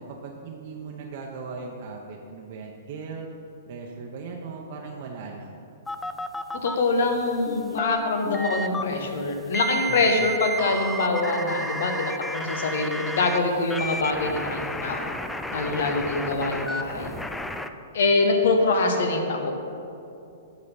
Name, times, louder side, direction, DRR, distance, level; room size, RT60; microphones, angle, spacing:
voice 1, 0.0-3.3 3.7-5.6 9.9-10.3, right 4 dB, 55° right, 0 dB, 0.8 m, -38 dB
sound 1, 5.9-6.8 7.5-8.8 9.5-13.4 13.7-17.7, right 1 dB, 5° left, 0.4 m, -32 dB
voice 2, 6.6-15.1 15.5-17.1 17.9-19.5, left 3 dB, 65° left, 4 dB, 1.2 m, -24 dB
11.5 x 4.2 x 5.4 m, 2.7 s
hypercardioid pair, 120°, 0 cm